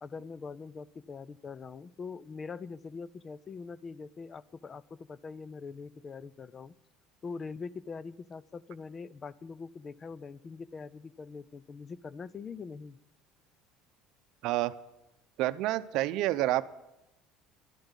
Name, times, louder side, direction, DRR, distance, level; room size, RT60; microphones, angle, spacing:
voice 1, 0.0-6.7 7.2-13.0, left 5 dB, 30° left, 20 dB, 0.5 m, -43 dB
voice 2, 14.4-14.8 15.4-16.6, right 16 dB, 70° right, 13 dB, 0.6 m, -28 dB
12.5 x 7.9 x 9.9 m, 0.90 s
supercardioid pair, 115°, 0 cm